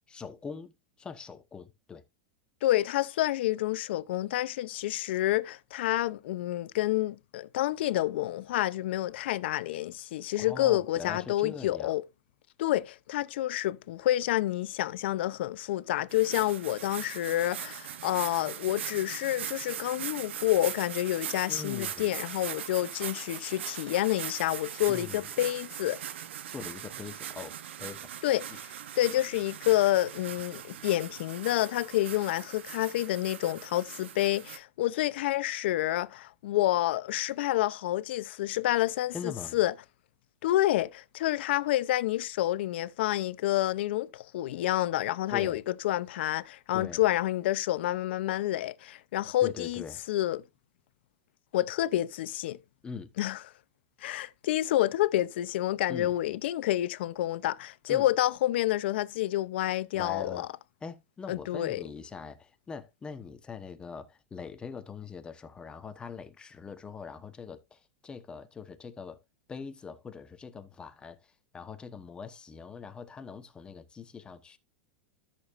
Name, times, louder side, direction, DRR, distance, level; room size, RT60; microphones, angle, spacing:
voice 1, 0.1-2.0 10.4-11.9 21.5-22.1 24.9-25.3 26.4-28.1 39.1-39.6 45.3-45.6 46.7-47.0 49.4-50.0 52.8-53.1 55.9-56.1 57.9-58.1 59.9-60.5 60.8-69.2 69.5-74.6, left 5 dB, 15° left, 1.0 m, -42 dB
voice 2, 2.6-12.0 12.6-26.0 28.2-28.7 29.0-39.7 40.4-50.4 51.5-52.6 53.2-53.4 54.0-60.5 61.3-61.8, left 14 dB, 70° left, 0.6 m, -28 dB
sound 1, 16.1-34.6, right 10 dB, 85° right, 1.0 m, -40 dB
13.0 x 6.7 x 2.5 m
supercardioid pair, 140°, 6 cm